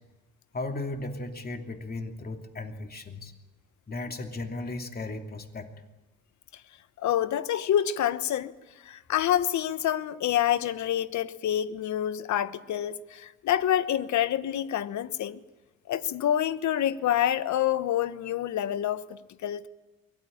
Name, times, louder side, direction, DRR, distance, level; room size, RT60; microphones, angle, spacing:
voice 1, 0.5-3.3 3.9-5.7, left 2 dB, 30° left, 2.8 m, -36 dB
voice 2, 7.0-8.5 8.8-15.4 15.9-19.7, left 11 dB, 70° left, 1.1 m, -27 dB
23.0 x 17.5 x 8.8 m
cardioid pair, 90°, 30 cm